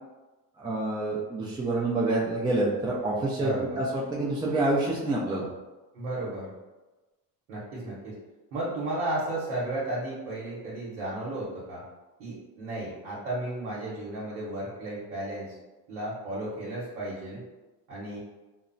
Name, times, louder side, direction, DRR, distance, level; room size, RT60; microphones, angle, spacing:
voice 1, 0.6-5.5, right 2 dB, 10° right, -5 dB, 0.3 m, -27 dB
voice 2, 3.4-3.8 5.9-6.5 7.5-8.1 8.5-11.8 12.2-15.5 15.9-17.4 17.9-18.2, right 1 dB, 90° right, -8 dB, 0.9 m, -34 dB
2.8 x 2.1 x 2.5 m, 1.1 s
supercardioid pair, 90°, 43 cm